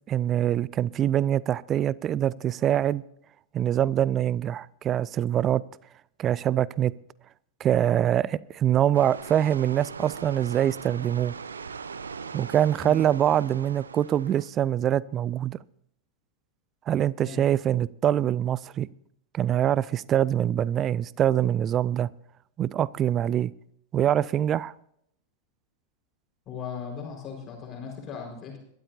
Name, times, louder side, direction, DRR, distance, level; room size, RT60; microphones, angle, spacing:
voice 1, 0.1-3.0 3.5-5.6 6.2-6.9 7.6-11.3 12.3-15.6 16.9-18.9 19.3-22.1 22.6-23.5 23.9-24.7, right 11 dB, 30° right, 22 dB, 0.4 m, -24 dB
sound 1, 8.9-14.5, right 5 dB, 70° right, 0.7 m, -40 dB
voice 2, 26.5-28.6, left 6 dB, 30° left, 0 dB, 4.8 m, -37 dB
22.0 x 13.0 x 2.8 m, 0.73 s
figure-of-eight pair, 90°, 0 cm